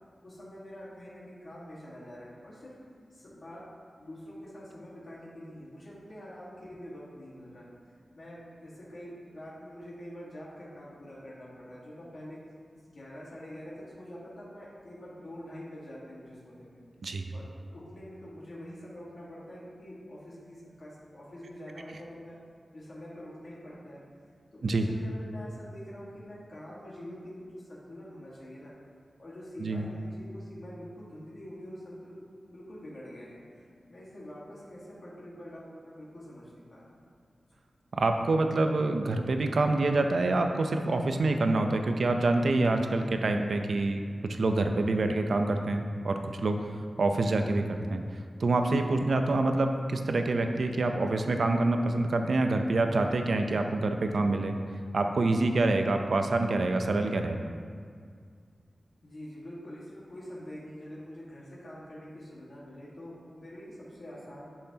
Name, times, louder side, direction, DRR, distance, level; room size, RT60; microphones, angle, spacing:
voice 1, 0.2-2.8 3.1-3.6 4.0-7.7 8.1-12.4 12.9-16.8 17.3-22.4 22.7-24.0 24.5-28.7 29.2-36.8 59.0-64.5, equal, 55° left, -7 dB, 1.6 m, -45 dB
voice 2, 37.9-46.6 47.0-48.0 48.4-54.5 54.9-57.4, right 2 dB, 70° right, 5 dB, 0.5 m, -26 dB
10.5 x 5.7 x 2.8 m, 2.1 s
wide cardioid pair, 110°, 0 cm